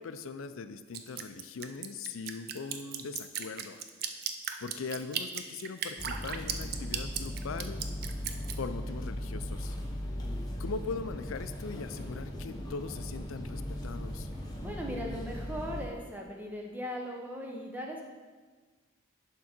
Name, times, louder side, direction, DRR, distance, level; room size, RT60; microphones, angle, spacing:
voice 1, 0.0-3.8 4.6-7.9 8.6-9.8 10.6-14.3, left 4 dB, 75° left, 11 dB, 0.4 m, -40 dB
Drip, 0.9-8.5, right 8 dB, 45° right, 0.4 m, -36 dB
sound 1, 6.0-15.9, equal, 20° left, 0.9 m, -38 dB
voice 2, 14.6-18.0, equal, 10° right, 0 dB, 0.7 m, -38 dB
11.0 x 3.7 x 4.3 m, 1.4 s
head